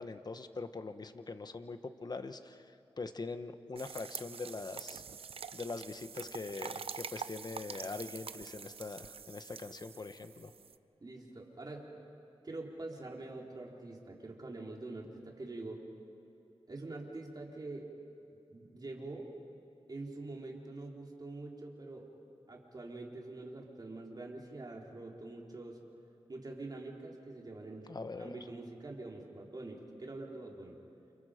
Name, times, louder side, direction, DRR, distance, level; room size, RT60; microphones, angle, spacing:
voice 1, 0.0-5.0 5.5-10.5 27.9-28.4, left 3 dB, 40° left, 9 dB, 1.2 m, -43 dB
sound 1, 3.8-10.8, right 6 dB, 70° right, 0.6 m, -46 dB
voice 2, 11.0-11.9 12.4-15.8 16.7-17.9 18.5-19.3 19.9-22.1 22.5-25.8 26.3-27.9 28.2-30.8, right 2 dB, 40° right, -1 dB, 3.9 m, -45 dB
29.5 x 29.0 x 5.1 m, 2.9 s
wide cardioid pair, 80°, 10 cm